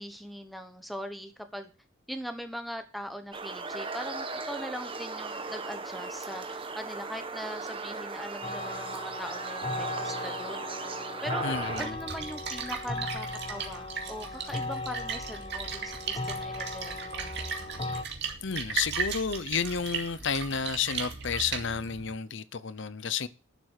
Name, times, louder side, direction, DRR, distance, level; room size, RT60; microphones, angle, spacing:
voice 1, 0.0-1.7 2.1-10.9 11.2-11.4 11.8-17.3, equal, ahead, 1.1 m, -41 dB
sound 1, 3.3-11.9, right 4 dB, 25° right, 1.1 m, -37 dB
sound 2, 8.4-18.0, left 2 dB, 25° left, 0.8 m, -37 dB
voice 2, 11.4-11.9 18.4-23.3, left 6 dB, 60° left, 0.7 m, -31 dB
Splash splatter, 11.5-22.1, right 5 dB, 55° right, 2.4 m, -37 dB
11.5 x 7.6 x 6.6 m
head